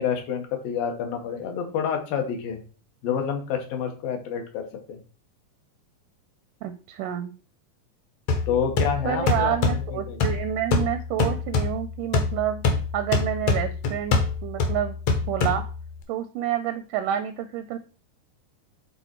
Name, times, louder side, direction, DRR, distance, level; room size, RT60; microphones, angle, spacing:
voice 1, 0.0-2.6 3.0-5.0 8.5-9.5 9.9-10.3, left 7 dB, 75° left, 4 dB, 3.0 m, -28 dB
voice 2, 6.6-7.3 9.1-12.6 12.9-15.0 15.3-15.6 16.1-17.8, right 10 dB, 80° right, 9 dB, 1.9 m, -28 dB
sound 1, 8.3-16.0, left 4 dB, 60° left, 2.1 m, -26 dB
8.0 x 4.1 x 4.4 m, 0.36 s
omnidirectional pair, 4.1 m